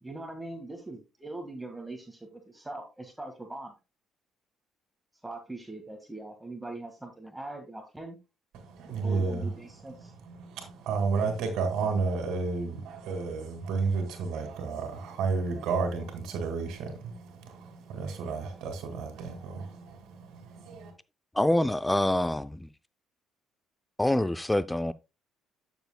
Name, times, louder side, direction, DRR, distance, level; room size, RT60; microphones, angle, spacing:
voice 1, 0.0-3.7 5.2-8.2 8.9-10.1, right 2 dB, 10° right, 1.7 m, -41 dB
voice 2, 8.5-9.5 10.0-20.9, right 4 dB, 75° right, 2.1 m, -32 dB
voice 3, 21.3-22.7 24.0-24.9, left 1 dB, 10° left, 0.4 m, -26 dB
11.5 x 7.0 x 2.2 m
supercardioid pair, 65°, 0 cm